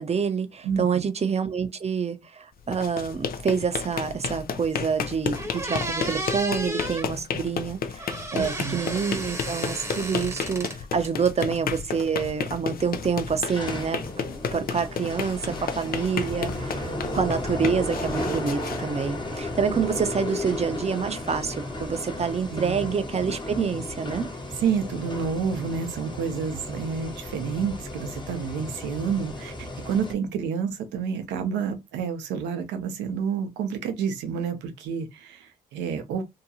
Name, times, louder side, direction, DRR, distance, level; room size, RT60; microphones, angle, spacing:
voice 1, 0.0-14.0 14.5-24.3, right 6 dB, 35° right, 0.6 m, -27 dB
voice 2, 0.6-1.0 8.3-8.8 15.0-15.1 15.4-15.6 22.5-22.9 24.6-36.2, right 6 dB, 80° right, 0.6 m, -29 dB
sound 1, 2.6-19.6, left 6 dB, 55° left, 0.5 m, -33 dB
sound 2, 4.9-5.0 5.3-7.1 8.0-10.8 11.0-11.8, right 1 dB, 15° right, 0.9 m, -33 dB
sound 3, 12.8-30.1, left 1 dB, 25° left, 1.0 m, -34 dB
2.8 x 2.2 x 2.7 m
hypercardioid pair, 45°, 18 cm